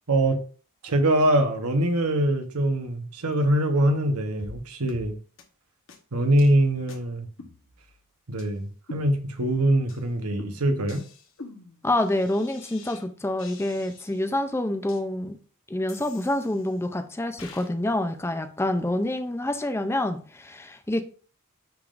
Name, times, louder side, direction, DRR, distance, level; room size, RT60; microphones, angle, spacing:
voice 1, 0.1-0.4 0.8-5.2 6.1-7.3 8.3-11.0, right 1 dB, 85° right, 1.1 m, -23 dB
sound 1, 4.4-4.6 4.9-5.1 5.4-5.5 5.9-6.0 6.4-6.5 6.9-7.0 7.4-8.0 8.4-8.5 8.9-9.5 9.9-10.0 10.4-13.0 13.4-14.3 14.9-15.0 15.9-16.8 17.4-17.7, left 3 dB, 60° left, 1.1 m, -46 dB
voice 2, 11.8-15.4 15.7-21.0, left 1 dB, 10° left, 0.5 m, -27 dB
10.5 x 3.7 x 2.5 m
head